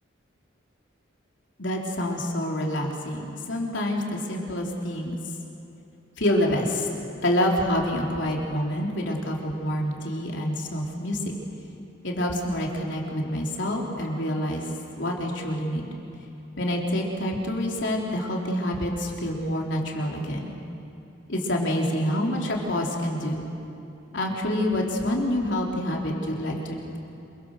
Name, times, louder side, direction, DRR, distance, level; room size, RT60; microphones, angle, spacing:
voice 1, 1.6-5.2 6.2-6.9 7.2-11.3 12.0-14.7 15.0-15.9 16.6-20.5 21.3-23.4 24.1-27.0, left 1 dB, 65° left, -1 dB, 3.7 m, -27 dB
27.0 x 23.5 x 6.7 m, 2.9 s
head